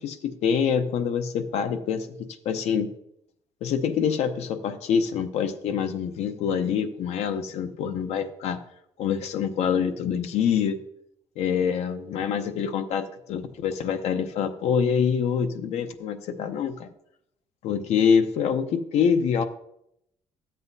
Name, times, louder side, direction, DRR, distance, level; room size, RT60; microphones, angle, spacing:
voice 1, 0.0-2.1 2.4-2.9 3.6-8.6 9.0-10.8 11.4-16.9 17.6-19.4, left 7 dB, 70° left, 9 dB, 0.8 m, -25 dB
13.5 x 7.8 x 2.7 m, 0.78 s
cardioid pair, 175°, 11 cm